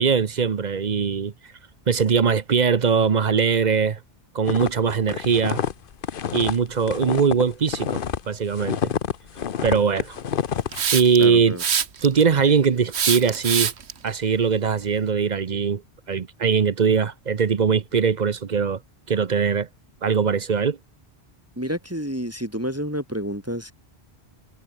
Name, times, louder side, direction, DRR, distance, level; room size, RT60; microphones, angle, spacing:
voice 1, 0.0-1.3 1.9-4.0 4.3-5.6 6.3-8.0 8.3-8.8 9.6-10.2 10.9-11.6 12.0-13.7 14.0-15.8 16.1-18.8 19.1-19.7 20.0-20.8, right 6 dB, 45° right, 0.9 m, -21 dB
sound 1, 4.4-8.2 8.5-10.8, left 8 dB, 60° left, 1.0 m, -27 dB
Hiss, 10.7-11.2 11.6-12.2 12.9-13.9, right 7 dB, 90° right, 1.4 m, -23 dB
voice 2, 11.2-11.6 21.6-23.7, equal, 15° right, 3.4 m, -29 dB
omnidirectional pair, 1.1 m